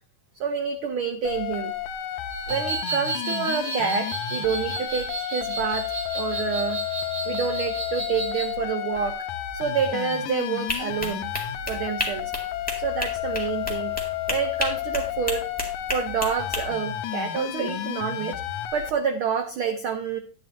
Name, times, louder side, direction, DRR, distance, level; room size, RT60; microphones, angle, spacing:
voice 1, 0.4-1.7 2.5-6.8 7.3-9.3 9.5-11.3 11.7-12.3 12.8-13.9 14.3-15.5 15.9-18.4 18.7-20.2, right 6 dB, 90° right, 7 dB, 1.1 m, -28 dB
sound 1, 1.2-18.9, left 12 dB, 90° left, 2.1 m, -31 dB
sound 2, 2.3-8.5, right 4 dB, 50° right, 5.6 m, -33 dB
sound 3, 10.7-16.6, left 1 dB, 5° left, 1.5 m, -32 dB
10.5 x 10.0 x 2.7 m, 0.36 s
omnidirectional pair, 3.3 m